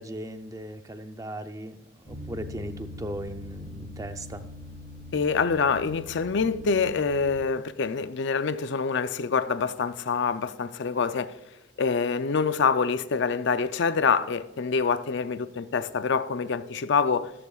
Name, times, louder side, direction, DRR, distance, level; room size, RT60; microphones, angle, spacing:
voice 1, 0.0-4.5, right 1 dB, 15° right, 0.5 m, -38 dB
sound 1, 2.1-7.5, left 2 dB, 40° left, 2.4 m, -42 dB
voice 2, 5.1-11.4 11.8-17.3, left 5 dB, 55° left, 0.5 m, -26 dB
13.5 x 13.5 x 2.4 m
head